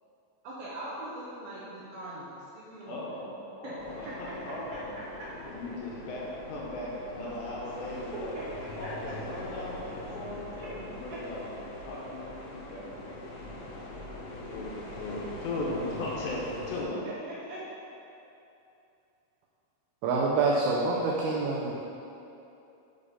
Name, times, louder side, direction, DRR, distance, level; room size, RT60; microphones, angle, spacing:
voice 1, 0.4-3.1 3.6-3.7 4.0-4.1 4.7-4.8 8.1-9.1 10.5-10.7 17.0-17.6, right 2 dB, 70° right, -8 dB, 2.5 m, -41 dB
voice 2, 2.9-4.9 5.5-8.3 8.8-11.5 11.9-12.8 14.5-14.7 15.0-17.0, left 2 dB, 75° left, -4 dB, 3.2 m, -37 dB
sound 1, 3.8-16.8, left 1 dB, 90° left, 3.8 m, -42 dB
voice 3, 20.0-21.7, right 3 dB, 85° right, -3 dB, 2.2 m, -26 dB
8.8 x 5.0 x 5.3 m, 2.8 s
omnidirectional pair, 5.4 m